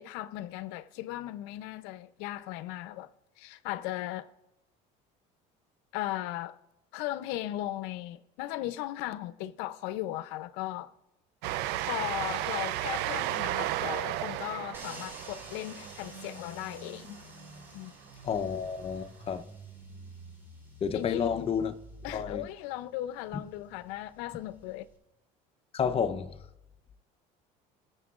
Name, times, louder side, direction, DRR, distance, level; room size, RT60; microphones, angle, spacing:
voice 1, 0.0-3.1 3.4-4.3 5.9-6.6 6.9-10.9 11.8-17.2 17.7-17.9 20.9-21.5 22.0-24.9, left 15 dB, 85° left, 0.6 m, -37 dB
Train, 11.4-17.6, right 14 dB, 75° right, 0.5 m, -34 dB
sound 1, 14.7-25.0, right 1 dB, 15° right, 2.8 m, -50 dB
voice 2, 18.2-19.5 20.8-21.7 22.1-22.4 25.7-26.4, left 7 dB, 35° left, 0.7 m, -30 dB
20.0 x 6.8 x 2.4 m
cardioid pair, 115°, 17 cm